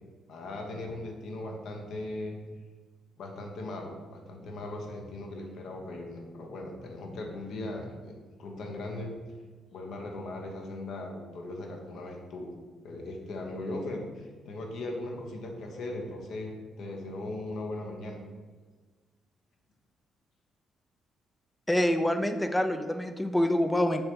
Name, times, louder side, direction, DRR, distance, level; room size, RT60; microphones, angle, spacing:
voice 1, 0.3-2.4 3.2-8.1 8.4-9.1 9.7-12.6 12.8-18.2, left 2 dB, 70° left, 2 dB, 1.3 m, -38 dB
voice 2, 21.7-24.0, left 1 dB, 10° left, 8 dB, 0.6 m, -26 dB
7.0 x 3.3 x 5.3 m, 1.4 s
cardioid pair, 90°, 0 cm